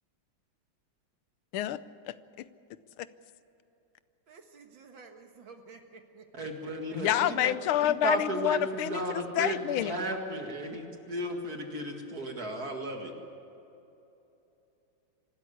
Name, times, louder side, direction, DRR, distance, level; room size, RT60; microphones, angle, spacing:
voice 1, 1.5-2.1 3.0-3.1 6.9-9.9, left 11 dB, 85° left, 15 dB, 1.6 m, -28 dB
voice 2, 4.3-6.2 6.9-7.0, right 5 dB, 65° right, 5 dB, 2.3 m, -51 dB
voice 3, 6.3-7.6 8.0-13.1, right 1 dB, 45° right, 3 dB, 2.4 m, -34 dB
25.0 x 13.0 x 9.7 m, 2.9 s
omnidirectional pair, 2.3 m